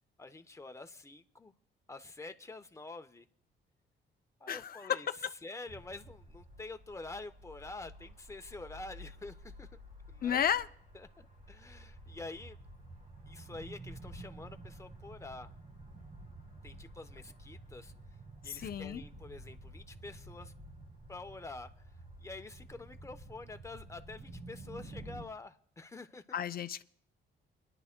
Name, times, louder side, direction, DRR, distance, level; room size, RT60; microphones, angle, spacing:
voice 1, 0.2-1.5 1.9-3.3 4.4-9.7 10.1-10.4 10.9-12.6 13.3-15.5 16.6-17.9 18.4-20.5 21.1-21.9 22.2-26.2, left 3 dB, 15° left, 0.8 m, -47 dB
voice 2, 4.5-5.0 10.2-10.7 18.5-19.0 26.3-26.8, left 9 dB, 50° left, 0.5 m, -32 dB
sound 1, 5.7-25.2, right 1 dB, 45° right, 2.2 m, -51 dB
29.0 x 11.0 x 2.2 m
cardioid pair, 90°, 20 cm